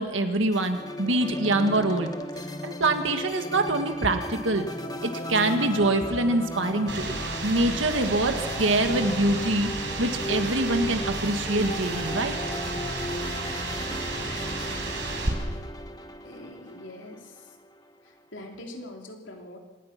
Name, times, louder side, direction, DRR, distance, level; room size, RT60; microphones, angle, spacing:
voice 1, 0.0-2.1 2.6-4.7 5.0-7.2 7.4-9.7 10.0-12.4, right 2 dB, 85° right, 6 dB, 1.9 m, -25 dB
sound 1, 0.5-17.9, left 1 dB, 20° left, 1.3 m, -36 dB
sound 2, 6.9-15.3, right 3 dB, 70° right, 4.9 m, -33 dB
voice 2, 16.2-17.6 18.0-19.6, left 1 dB, 80° left, 2 dB, 3.3 m, -43 dB
26.5 x 19.5 x 6.0 m, 1.4 s
head